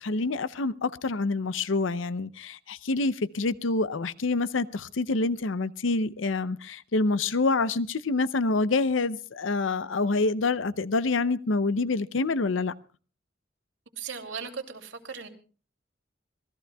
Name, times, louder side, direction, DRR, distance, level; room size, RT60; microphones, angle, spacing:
voice 1, 0.0-12.7, left 3 dB, 85° left, 0.6 m, -27 dB
voice 2, 14.0-15.3, right 6 dB, 85° right, 2.7 m, -37 dB
26.5 x 19.0 x 2.3 m
head